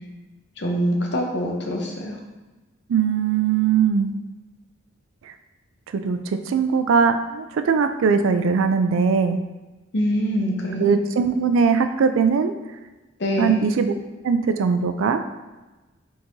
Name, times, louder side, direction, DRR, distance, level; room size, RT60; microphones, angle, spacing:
voice 1, 0.6-2.2 9.9-10.9 13.2-13.6, equal, 55° left, 1 dB, 0.7 m, -24 dB
voice 2, 2.9-4.1 5.9-9.4 10.8-12.5 13.4-13.9 14.2-15.2, right 5 dB, 75° right, 8 dB, 0.3 m, -20 dB
4.6 x 3.7 x 2.6 m, 1.2 s
head